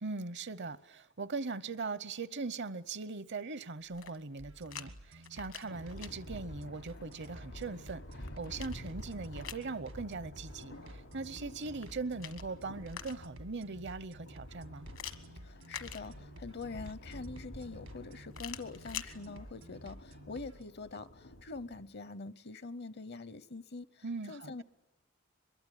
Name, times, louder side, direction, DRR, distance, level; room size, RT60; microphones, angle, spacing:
voice 1, 0.0-14.9 24.0-24.6, right 3 dB, 60° right, 0.8 m, -40 dB
sound 1, 3.8-4.9 5.2-6.1 7.8-9.7 11.7-13.4 14.9-16.5 18.3-19.1, left 9 dB, 70° left, 1.5 m, -46 dB
sound 2, 4.4-20.6, right 1 dB, 80° right, 1.9 m, -53 dB
Thunder, 5.7-21.9, equal, 90° left, 3.1 m, -50 dB
voice 2, 15.4-24.6, left 3 dB, 55° left, 0.8 m, -44 dB
23.5 x 22.0 x 9.9 m
head